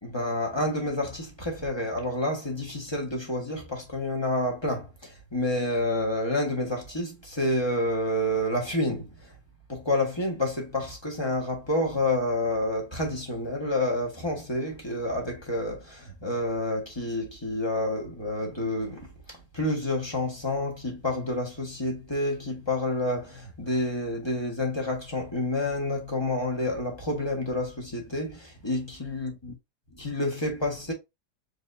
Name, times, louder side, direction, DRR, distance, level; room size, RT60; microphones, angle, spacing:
voice 1, 0.0-9.3 9.7-19.1 19.5-29.5 30.0-30.9, left 1 dB, 20° left, 1.2 m, -29 dB
4.8 x 3.2 x 2.6 m
omnidirectional pair, 1.6 m